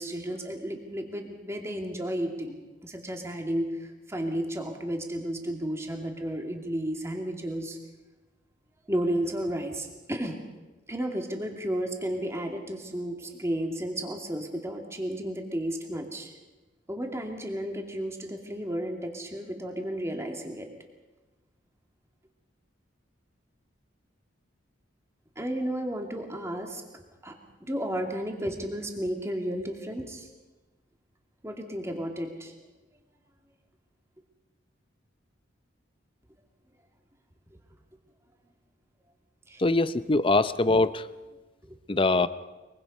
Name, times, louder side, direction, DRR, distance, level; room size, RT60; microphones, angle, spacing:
voice 1, 0.0-2.5 2.8-7.8 8.9-10.4 10.9-16.3 16.9-20.7 25.4-26.8 27.2-27.3 27.6-30.3 31.4-32.5 39.5-39.6 41.7-41.8, right 1 dB, 15° right, 3 dB, 2.4 m, -33 dB
voice 2, 39.6-41.0 41.9-42.3, left 2 dB, 25° left, 14 dB, 0.6 m, -23 dB
23.5 x 23.0 x 5.5 m, 1.2 s
head